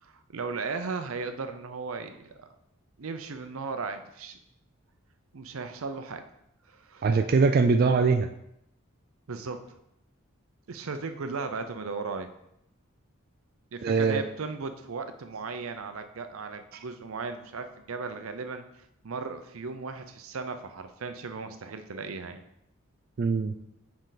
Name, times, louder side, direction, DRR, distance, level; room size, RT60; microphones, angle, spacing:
voice 1, 0.0-2.5 3.0-4.4 5.3-6.2 6.7-7.1 9.3-9.7 10.7-12.3 13.7-18.6 19.0-22.4, right 4 dB, 85° right, 8 dB, 0.6 m, -36 dB
voice 2, 7.0-8.3 13.8-14.2 23.2-23.5, right 4 dB, 45° right, 7 dB, 0.3 m, -22 dB
6.6 x 4.7 x 4.0 m, 0.80 s
head